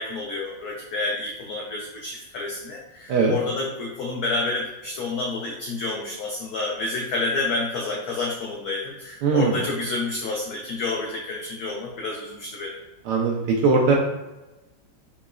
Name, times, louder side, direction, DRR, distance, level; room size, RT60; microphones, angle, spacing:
voice 1, 0.0-12.8, left 3 dB, 85° left, -2 dB, 0.8 m, -29 dB
voice 2, 9.2-9.6 13.0-13.9, right 4 dB, 75° right, -1 dB, 1.0 m, -20 dB
3.9 x 3.0 x 2.3 m, 1.0 s
omnidirectional pair, 2.2 m